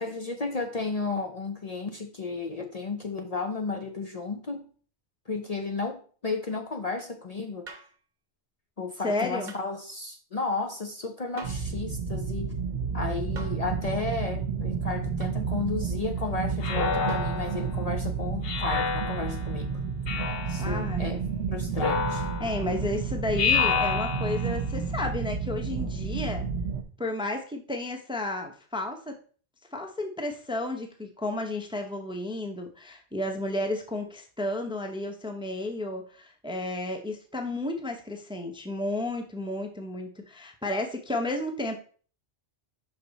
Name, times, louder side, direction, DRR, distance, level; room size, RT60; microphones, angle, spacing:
voice 1, 0.0-4.7 5.3-7.7 8.8-12.5 12.9-19.7 20.5-21.2 21.5-22.3, left 3 dB, 40° left, 0.7 m, -33 dB
sound 1, 7.7-8.0 9.5-9.7 11.4-11.7 13.4-13.7 15.2-15.4 17.1-17.4 19.0-19.1, right 3 dB, 45° right, 0.9 m, -43 dB
voice 2, 9.0-9.5 20.3-21.0 22.4-26.5 27.0-29.2 29.7-41.8, left 2 dB, 5° right, 0.6 m, -32 dB
sound 2, 11.4-26.8, right 5 dB, 80° right, 1.0 m, -31 dB
Speech synthesizer, 16.6-17.7 18.4-19.5 20.1-20.7 21.7-22.7 23.4-24.5, left 6 dB, 65° left, 1.0 m, -28 dB
5.7 x 5.6 x 3.9 m
omnidirectional pair, 1.1 m